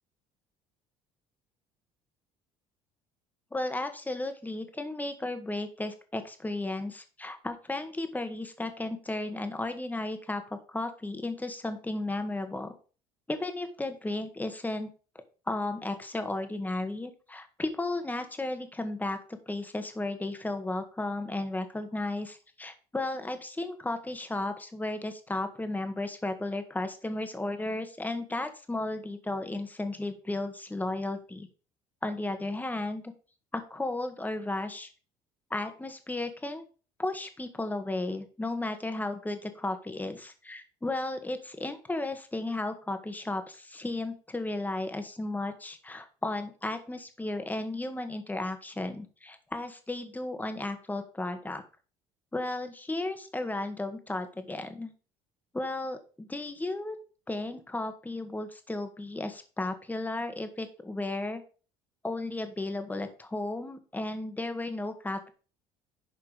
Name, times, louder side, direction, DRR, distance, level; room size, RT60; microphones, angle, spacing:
voice 1, 3.5-12.7 13.3-14.9 15.5-19.2 19.5-31.5 32.0-33.0 33.5-34.9 35.5-36.6 37.0-51.6 52.3-54.9 55.5-57.0 57.3-61.4 62.0-65.3, left 2 dB, 10° left, 8 dB, 1.8 m, -34 dB
11.0 x 4.4 x 5.1 m, 0.37 s
supercardioid pair, 75°, 13 cm